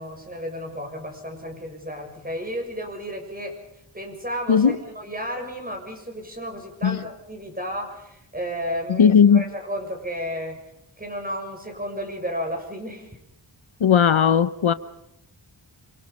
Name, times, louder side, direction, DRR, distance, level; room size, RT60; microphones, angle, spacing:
voice 1, 0.0-3.6 3.9-10.6 11.0-13.2, equal, 20° right, 6.7 m, -33 dB
voice 2, 8.9-9.4 13.8-14.7, left 7 dB, 75° left, 1.0 m, -17 dB
28.0 x 24.5 x 5.4 m
wide cardioid pair, 85°, 48 cm